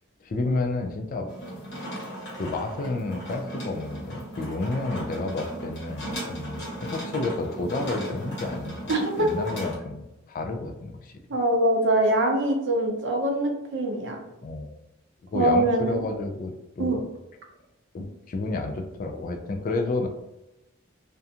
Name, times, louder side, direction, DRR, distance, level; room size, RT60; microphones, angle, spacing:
voice 1, 0.2-1.3 2.3-11.1 14.4-14.7 15.3-17.0 17.9-20.1, left 2 dB, 40° left, 4 dB, 0.3 m, -31 dB
sound 1, 1.3-9.8, right 1 dB, 55° left, 0.9 m, -36 dB
voice 2, 8.9-9.3 11.3-14.2 15.3-16.0 16.8-17.0, right 1 dB, 60° right, 1 dB, 0.5 m, -23 dB
2.4 x 2.2 x 2.7 m, 0.92 s
head